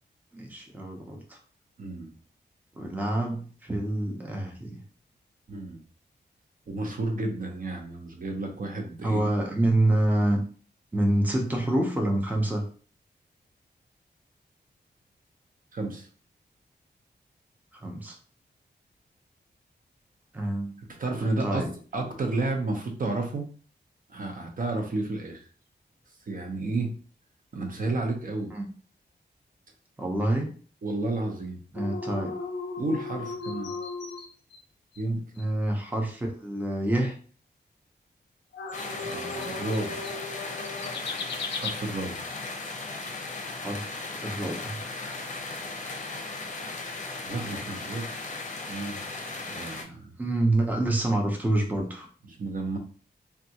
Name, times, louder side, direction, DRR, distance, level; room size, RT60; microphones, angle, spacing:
voice 1, 0.3-1.4 2.7-4.8 9.0-10.4 10.9-12.6 17.7-18.1 20.3-20.8 21.4-21.7 28.5-28.7 30.0-30.5 31.7-32.4 35.4-37.2 43.6-44.8 50.2-52.1, right 1 dB, 10° right, 1 dB, 0.6 m, -27 dB
voice 2, 1.8-2.1 5.5-5.8 6.7-9.3 15.7-16.1 21.0-23.5 24.1-25.4 26.3-26.9 27.5-28.5 30.8-31.6 32.8-33.7 35.0-35.2 39.0-40.1 41.6-42.3 47.3-48.3 48.7-49.0 49.5-50.1 52.4-52.8, right 2 dB, 50° right, 2 dB, 0.7 m, -31 dB
sound 1, 31.8-34.6 34.9-35.0 35.4-35.5 38.5-41.7, left 4 dB, 90° left, 0.5 m, -36 dB
sound 2, 38.7-49.8, left 3 dB, 45° left, 0.6 m, -37 dB
3.5 x 2.3 x 2.8 m, 0.42 s
wide cardioid pair, 110°, 18 cm